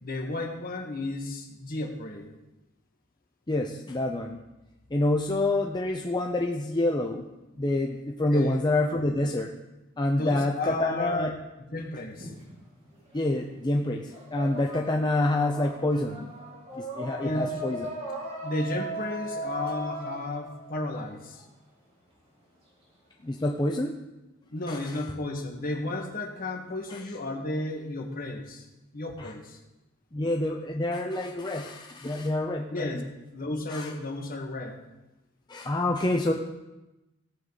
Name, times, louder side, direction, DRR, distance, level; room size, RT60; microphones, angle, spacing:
voice 1, 0.0-2.3 8.3-8.6 10.1-11.4 11.7-12.3 17.2-17.5 18.4-21.4 24.5-28.6 28.9-29.6 32.7-33.0 33.3-34.8, left 2 dB, 45° left, 2 dB, 1.7 m, -33 dB
voice 2, 3.5-4.4 4.9-7.2 7.6-9.5 10.0-11.3 13.1-16.3 16.8-17.9 23.2-23.9 24.7-25.0 26.9-27.0 29.2-29.3 30.1-33.0 33.7-33.9 35.5-36.3, left 1 dB, 20° left, 1 dB, 0.6 m, -27 dB
sound 1, 12.1-13.3 13.7-21.4, right 1 dB, 30° right, 3.4 m, -38 dB
17.0 x 7.8 x 4.0 m, 1.0 s
head